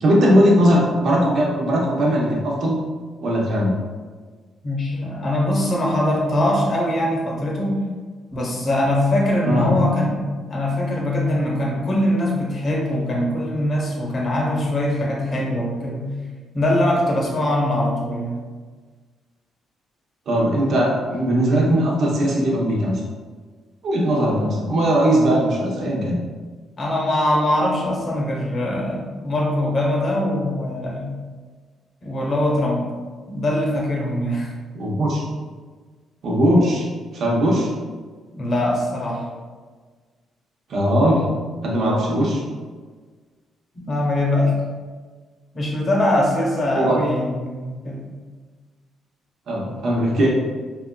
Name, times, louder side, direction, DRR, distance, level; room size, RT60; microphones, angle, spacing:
voice 1, 0.0-2.8 3.2-3.7 9.4-9.7 20.3-23.0 23.8-26.2 34.7-35.2 36.2-36.8 37.1-37.7 40.7-41.2 41.6-42.4 46.7-47.0 49.5-50.3, equal, 65° right, -3 dB, 0.9 m, -19 dB
voice 2, 4.6-7.8 8.3-16.1 16.5-18.4 26.8-31.1 32.0-32.9 33.3-34.5 36.5-36.6 38.3-39.2 43.7-44.5 45.5-48.1, left 1 dB, 45° left, -2 dB, 0.9 m, -22 dB
4.0 x 2.4 x 2.2 m, 1.5 s
cardioid pair, 90°, 0 cm